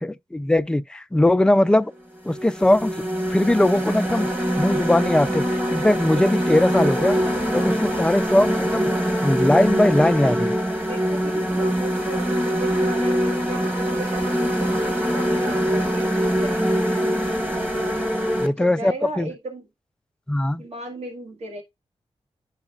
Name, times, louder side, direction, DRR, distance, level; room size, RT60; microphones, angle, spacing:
voice 1, 0.0-1.9 2.2-3.0 3.3-4.3 4.6-5.4 5.7-7.2 7.5-8.9 9.2-10.5 18.4-19.3 20.3-20.6, left 1 dB, 5° left, 0.3 m, -20 dB
sound 1, 1.6-1.7 2.3-18.5, equal, 15° right, 1.2 m, -23 dB
voice 2, 7.0-7.3 10.0-10.5 10.9-14.9 15.1-16.6 17.8-19.6 20.6-21.6, right 1 dB, 70° right, 2.2 m, -36 dB
10.5 x 4.8 x 2.3 m
wide cardioid pair, 145°, 11 cm